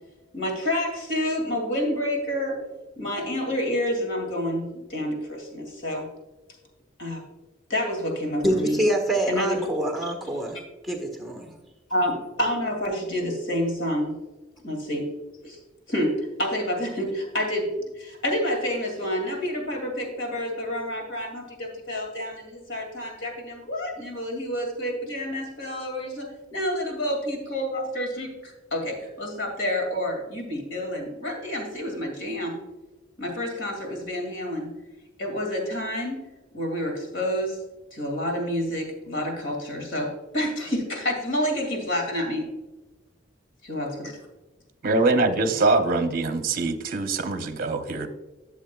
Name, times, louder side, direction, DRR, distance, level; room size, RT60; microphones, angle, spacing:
voice 1, 0.3-2.6 3.0-6.1 7.0-7.2 7.7-8.8 9.3-9.7 11.9-14.2 14.6-15.1 15.4-15.6 15.9-17.7 18.0-32.6 33.2-34.7 35.2-36.2 36.5-37.6 37.9-42.5 43.6-44.1, equal, 75° left, 2 dB, 2.3 m, -28 dB
voice 2, 8.4-10.6 10.9-11.5, right 1 dB, ahead, 2 dB, 1.4 m, -26 dB
voice 3, 44.8-48.1, right 3 dB, 50° right, 8 dB, 0.7 m, -23 dB
12.0 x 7.2 x 2.3 m, 1.1 s
head